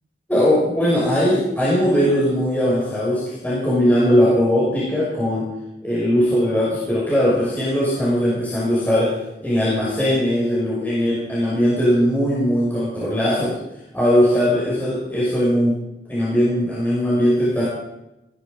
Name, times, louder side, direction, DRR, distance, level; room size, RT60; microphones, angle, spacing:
voice 1, 0.3-5.4 5.8-13.6 13.9-15.8 16.1-17.6, equal, 10° left, -9 dB, 6.0 m, -19 dB
20.5 x 11.5 x 5.2 m, 0.91 s
head